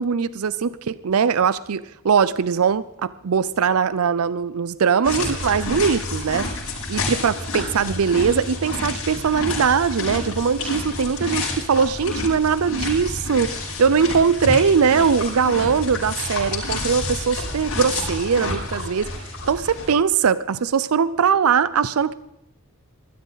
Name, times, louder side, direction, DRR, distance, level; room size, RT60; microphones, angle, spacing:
voice 1, 0.0-6.5 6.9-13.5 13.8-19.1 19.5-22.1, right 6 dB, 75° right, 17 dB, 0.5 m, -21 dB
sound 1, 5.0-19.9, left 2 dB, 90° left, 7.8 m, -29 dB
21.0 x 13.5 x 4.0 m, 0.86 s
head